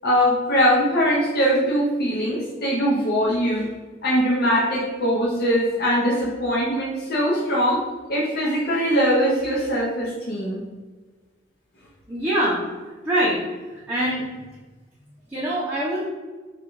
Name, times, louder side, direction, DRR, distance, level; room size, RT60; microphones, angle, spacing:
voice 1, 0.0-3.7 4.0-10.6, equal, 50° left, -4 dB, 0.7 m, -21 dB
voice 2, 12.1-12.6 13.0-13.4 13.9-14.3 15.3-16.0, right 1 dB, 10° right, -8 dB, 0.8 m, -23 dB
3.7 x 2.4 x 4.5 m, 1.3 s
head